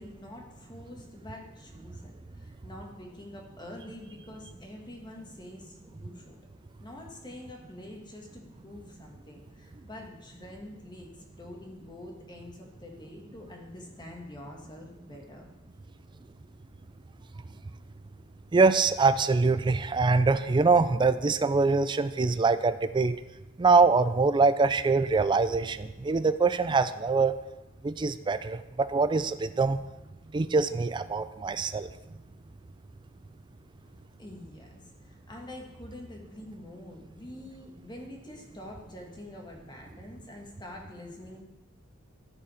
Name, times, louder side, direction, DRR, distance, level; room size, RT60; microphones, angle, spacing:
voice 1, 0.0-6.4 6.8-15.5 33.8-41.4, left 1 dB, 20° left, 1 dB, 1.5 m, -46 dB
voice 2, 18.5-23.2 23.6-27.3 27.8-29.8 30.3-31.9, right 4 dB, 20° right, 11 dB, 0.3 m, -24 dB
13.5 x 4.8 x 4.9 m, 1.0 s
head